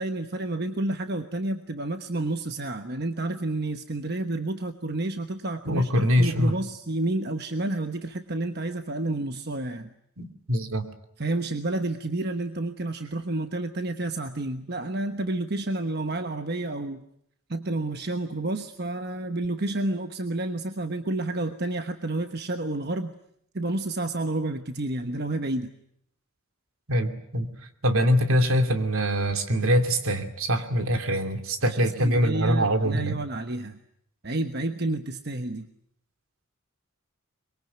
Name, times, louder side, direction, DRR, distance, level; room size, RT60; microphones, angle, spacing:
voice 1, 0.0-9.9 11.2-17.0 17.5-23.1 23.5-25.7 31.6-33.8 34.2-35.7, right 2 dB, 50° right, 7 dB, 1.2 m, -30 dB
voice 2, 5.6-6.5 10.2-10.9 26.9-27.5 27.8-33.2, equal, 75° right, 7 dB, 2.8 m, -23 dB
24.0 x 22.5 x 9.3 m, 0.72 s
head